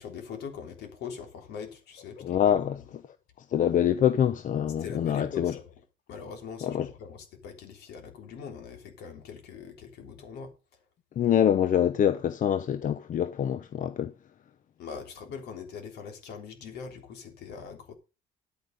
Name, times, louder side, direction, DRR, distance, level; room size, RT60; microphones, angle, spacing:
voice 1, 0.0-2.9 4.8-5.7 6.1-10.5 14.8-17.9, left 6 dB, 75° left, 3.4 m, -42 dB
voice 2, 2.2-2.8 3.5-5.6 6.6-6.9 11.2-14.1, left 9 dB, 50° left, 0.9 m, -25 dB
10.5 x 8.8 x 5.2 m
cardioid pair, 110°, 17 cm